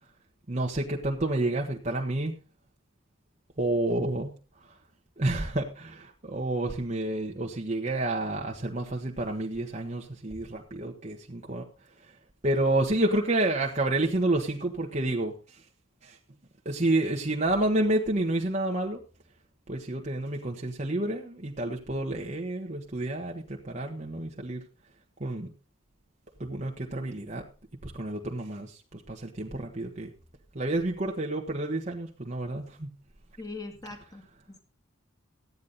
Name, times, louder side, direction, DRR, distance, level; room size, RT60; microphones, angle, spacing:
voice 1, 0.5-2.4 3.6-4.3 4.6-4.8 5.2-11.6 12.0-12.1 12.4-15.6 16.0-16.2 16.6-19.0 19.7-24.6 25.2-25.5 26.4-27.4 27.8-30.1 30.5-32.9, right 2 dB, 35° right, 0 dB, 1.2 m, -29 dB
voice 2, 33.4-34.6, left 3 dB, 20° left, 4 dB, 1.9 m, -41 dB
15.0 x 9.5 x 4.1 m, 0.36 s
head